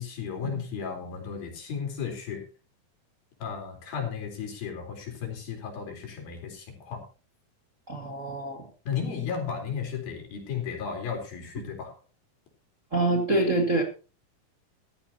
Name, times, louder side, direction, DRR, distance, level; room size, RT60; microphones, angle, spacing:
voice 1, 0.0-2.4 3.4-7.0 8.9-11.9, left 7 dB, 80° left, 5.8 m, -34 dB
voice 2, 7.9-8.7 12.9-13.8, right 2 dB, 35° right, 1.3 m, -26 dB
15.0 x 14.5 x 2.9 m
omnidirectional pair, 4.2 m